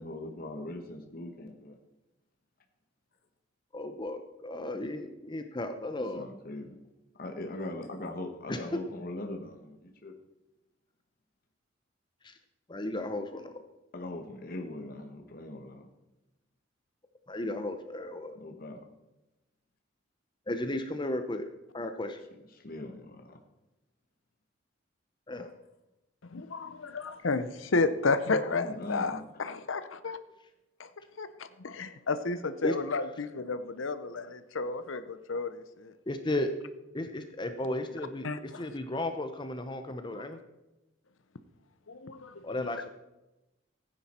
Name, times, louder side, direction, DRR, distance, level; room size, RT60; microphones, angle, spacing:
voice 1, 0.0-1.8 6.1-6.8 7.2-10.1 13.9-15.9 18.3-18.9 22.5-23.4 28.5-29.2, left 1 dB, 50° left, 3 dB, 1.2 m, -40 dB
voice 2, 3.7-6.3 8.5-8.6 12.2-12.4 12.7-13.5 17.3-18.4 20.5-22.2 25.3-25.5 32.6-32.7 36.1-36.5 36.9-40.4 42.4-42.9, left 1 dB, 25° left, 8 dB, 0.7 m, -34 dB
voice 3, 26.2-30.2 30.8-30.9 31.2-35.9 38.2-38.7 41.9-42.8, left 3 dB, 85° left, 12 dB, 0.8 m, -32 dB
15.0 x 9.3 x 4.3 m, 0.98 s
head